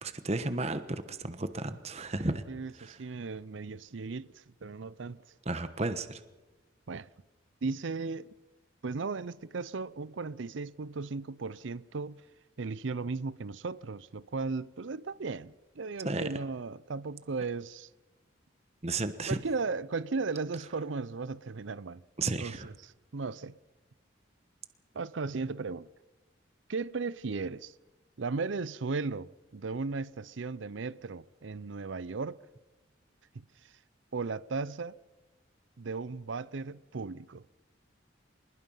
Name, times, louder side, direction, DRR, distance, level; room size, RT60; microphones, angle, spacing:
voice 1, 0.0-2.4 2.8-2.9 5.4-6.2 16.0-16.3 18.8-19.4 22.2-22.7, right 2 dB, 35° right, 1.2 m, -33 dB
voice 2, 2.5-5.2 6.9-7.1 7.6-8.3 8.8-12.2 12.6-17.9 19.3-23.6 24.9-25.9 26.7-27.7 28.2-32.4 33.3-33.4 34.1-35.0 35.8-37.4, right 4 dB, 75° right, 0.6 m, -36 dB
25.0 x 21.0 x 5.6 m
head